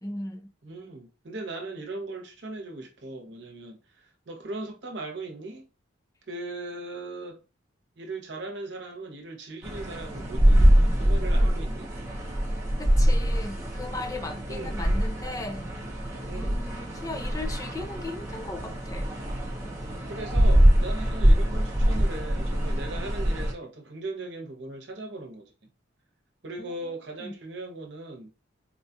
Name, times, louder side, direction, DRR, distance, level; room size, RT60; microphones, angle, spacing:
voice 1, 0.0-0.5 12.8-15.7 16.4-19.1 26.6-26.9 27.2-27.4, left 2 dB, 15° left, 0.5 m, -37 dB
voice 2, 0.6-5.7 6.3-7.4 8.0-11.9 14.5-14.8 16.3-16.6 20.1-25.5 26.4-28.3, right 2 dB, 60° right, 0.9 m, -38 dB
sound 1, 9.6-23.5, equal, 15° right, 0.7 m, -24 dB
4.2 x 2.4 x 2.8 m
head